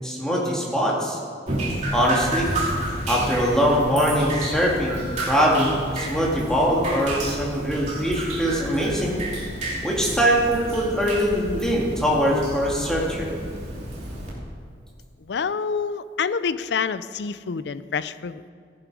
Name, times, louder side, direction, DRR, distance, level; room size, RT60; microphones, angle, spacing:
voice 1, 0.0-1.2 1.9-2.5 3.1-9.2 9.8-13.3, equal, 5° left, -4 dB, 2.3 m, -22 dB
Drip, 1.5-14.3, right 1 dB, 40° right, 2.8 m, -31 dB
voice 2, 15.3-18.5, left 5 dB, 75° left, 15 dB, 0.4 m, -27 dB
14.5 x 10.5 x 4.8 m, 2.2 s
head